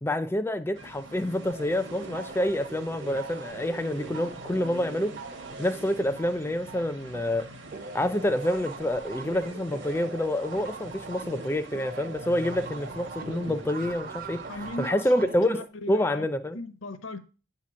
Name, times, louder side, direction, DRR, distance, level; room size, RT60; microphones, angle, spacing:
voice 1, 0.0-5.1 5.6-7.5 7.9-14.4 14.8-16.6, left 1 dB, 10° left, 0.4 m, -27 dB
sound 1, 0.7-14.8, right 1 dB, 60° right, 0.9 m, -45 dB
sound 2, 1.5-7.4 7.7-15.7, right 4 dB, 45° right, 0.5 m, -41 dB
voice 2, 14.5-16.3 16.5-17.2, left 1 dB, 75° left, 0.7 m, -38 dB
8.1 x 2.9 x 6.1 m
head